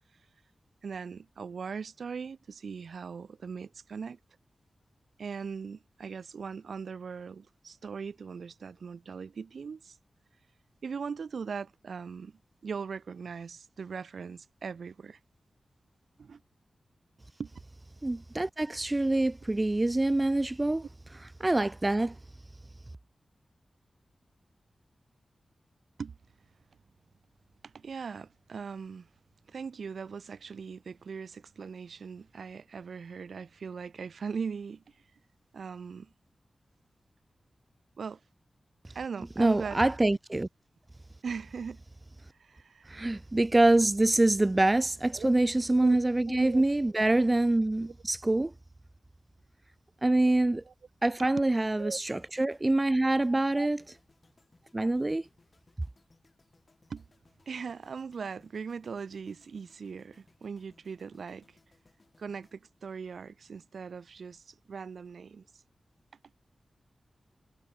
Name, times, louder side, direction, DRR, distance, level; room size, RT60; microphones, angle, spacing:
voice 1, 0.8-4.2 5.2-10.0 10.8-15.2 16.2-16.4 17.4-17.5 26.0-26.2 27.6-29.1 29.5-34.9 35.5-36.1 38.0-38.2 38.9-39.8 41.2-41.8 42.4-43.1 45.1-45.3 45.8-46.0 46.3-46.6 51.2-51.3 51.8-52.0 53.6-53.7 56.9-57.0 57.5-61.6 62.2-65.4, right 5 dB, 80° right, 0.5 m, -39 dB
voice 2, 18.0-20.8 21.4-22.2 39.4-40.5 42.9-48.5 50.0-50.6 51.0-53.8 54.7-55.2, right 2 dB, 20° right, 0.4 m, -25 dB
sound 1, 51.5-63.7 63.9-64.2, left 3 dB, 40° left, 4.2 m, -67 dB
wide cardioid pair, 100°, 0 cm